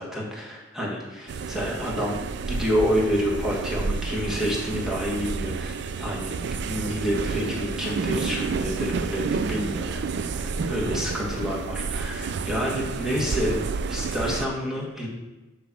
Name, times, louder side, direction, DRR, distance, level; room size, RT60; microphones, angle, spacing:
voice 1, 0.0-2.2 2.4-13.6 13.9-15.1, equal, 5° right, -3 dB, 1.6 m, -28 dB
sound 1, 1.3-14.5, right 4 dB, 60° right, 0.4 m, -30 dB
6.7 x 5.1 x 6.1 m, 1.1 s
head